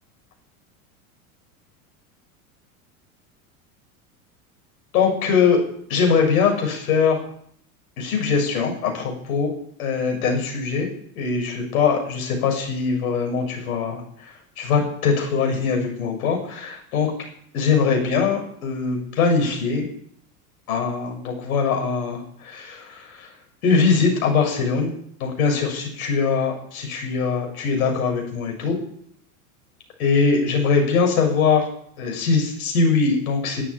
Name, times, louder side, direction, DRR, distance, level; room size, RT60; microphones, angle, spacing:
voice 1, 4.9-5.6 5.9-7.2 8.0-9.5 9.8-10.9 11.2-14.3 14.6-17.1 17.5-19.9 20.7-23.3 23.6-24.9 25.2-28.8 30.0-31.7 32.0-33.6, left 5 dB, 70° left, 2 dB, 7.0 m, -22 dB
12.0 x 11.0 x 8.6 m, 0.65 s
hypercardioid pair, 100°, 44 cm